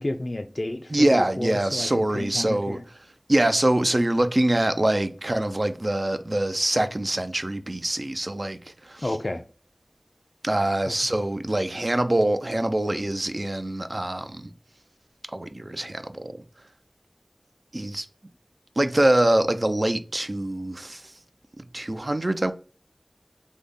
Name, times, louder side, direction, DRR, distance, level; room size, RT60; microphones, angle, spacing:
voice 1, 0.0-2.8 9.0-9.4 10.9-11.0, left 1 dB, 55° left, 0.3 m, -31 dB
voice 2, 0.9-2.8 3.3-8.6 8.8-9.0 10.4-14.5 15.3-16.3 17.7-18.1 18.8-21.0 21.6-22.5, right 1 dB, 50° right, 0.4 m, -24 dB
3.4 x 2.1 x 3.6 m
wide cardioid pair, 45°, 0 cm